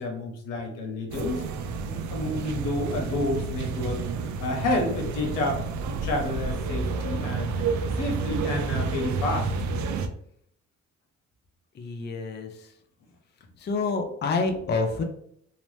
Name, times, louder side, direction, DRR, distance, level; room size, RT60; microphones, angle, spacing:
voice 1, 0.0-1.4 1.8-7.6 8.0-9.5, left 2 dB, 90° left, 1 dB, 0.8 m, -30 dB
sound 1, 1.1-10.1, right 4 dB, 70° right, 0.4 m, -30 dB
voice 2, 11.8-12.5 13.6-15.0, left 3 dB, 35° left, 3 dB, 0.5 m, -27 dB
2.8 x 2.0 x 3.1 m, 0.68 s
cardioid pair, 90°, 30 cm